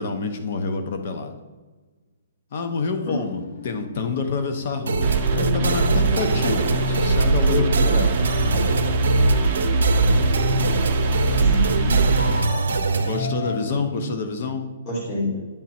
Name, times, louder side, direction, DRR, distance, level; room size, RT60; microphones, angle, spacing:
voice 1, 0.0-1.3 2.5-8.4 13.0-14.6, left 4 dB, 40° left, 7 dB, 0.8 m, -27 dB
sound 1, 2.6-3.9 4.7-7.6 8.1-11.5 12.2-13.6, left 3 dB, 65° left, 1.2 m, -37 dB
sound 2, 4.9-13.2, right 5 dB, 75° right, 0.7 m, -22 dB
sound 3, 5.0-12.4, right 1 dB, 20° right, 0.7 m, -23 dB
voice 2, 11.3-12.0 12.9-14.0 14.9-15.3, left 1 dB, 20° left, -6 dB, 1.8 m, -29 dB
10.0 x 3.6 x 4.3 m, 1.3 s
hypercardioid pair, 175°, 0 cm